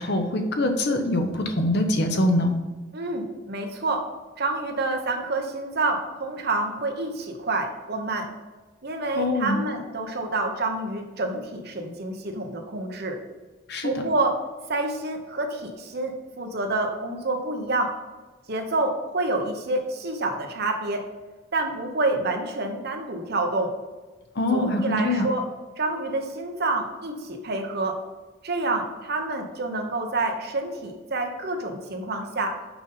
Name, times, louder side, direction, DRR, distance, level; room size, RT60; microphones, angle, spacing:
voice 1, 0.0-2.5 9.1-9.6 13.7-13.9 24.3-25.3, left 1 dB, 55° left, 5 dB, 0.9 m, -23 dB
voice 2, 2.9-4.1 4.4-8.3 8.8-13.2 13.8-14.4 14.7-18.0 18.5-21.0 21.5-23.7 24.5-25.4 25.8-28.0 28.4-32.6, right 2 dB, 55° right, 4 dB, 1.0 m, -28 dB
6.1 x 5.4 x 5.5 m, 1.3 s
head